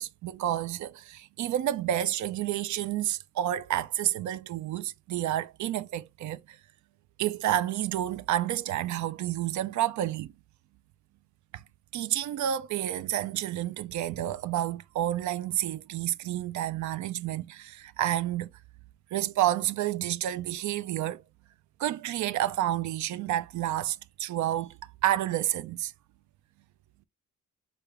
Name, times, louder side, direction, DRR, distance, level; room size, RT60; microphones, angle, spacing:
voice 1, 0.0-6.4 7.2-10.3 11.9-18.5 19.1-21.2 21.8-24.7 25.0-25.9, right 12 dB, 70° right, 0.5 m, -30 dB
6.5 x 2.3 x 3.5 m
cardioid pair, 90°, 30 cm